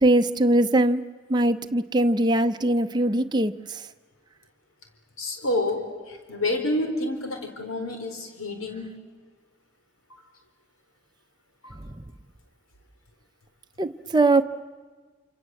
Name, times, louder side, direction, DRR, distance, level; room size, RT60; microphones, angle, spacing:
voice 1, 0.0-1.0 1.3-3.9 12.0-12.1 13.8-14.4, right 1 dB, 20° right, 6 dB, 0.7 m, -21 dB
voice 2, 5.2-8.9 11.6-11.8, left 1 dB, 90° left, 5 dB, 4.4 m, -29 dB
27.0 x 27.0 x 7.8 m, 1.4 s
head